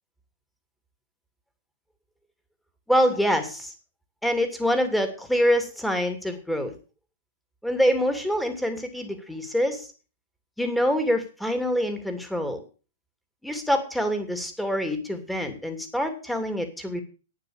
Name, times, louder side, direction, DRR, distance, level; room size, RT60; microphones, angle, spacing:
voice 1, 2.9-3.7 4.2-6.7 7.6-9.9 10.6-12.6 13.4-17.0, equal, ahead, 6 dB, 2.7 m, -25 dB
11.5 x 8.7 x 6.5 m, 0.35 s
hypercardioid pair, 120°, 0 cm